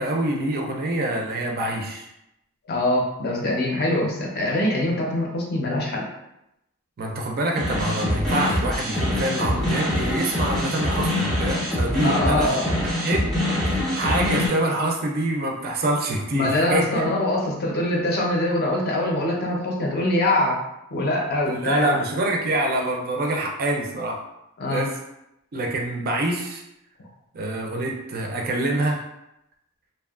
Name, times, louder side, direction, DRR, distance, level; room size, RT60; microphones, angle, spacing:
voice 1, 0.0-2.1 7.0-12.6 13.0-13.4 13.6-17.1 21.4-24.2 24.6-25.0 25.5-26.6 27.3-29.0, right 1 dB, 45° right, 1 dB, 0.4 m, -25 dB
voice 2, 2.7-6.1 12.0-12.8 16.3-20.6 20.9-22.0 24.6-24.9, left 1 dB, 45° left, -1 dB, 0.5 m, -23 dB
sound 1, 7.6-14.5, left 1 dB, ahead, 0.7 m, -24 dB
2.7 x 2.2 x 2.3 m, 0.86 s
head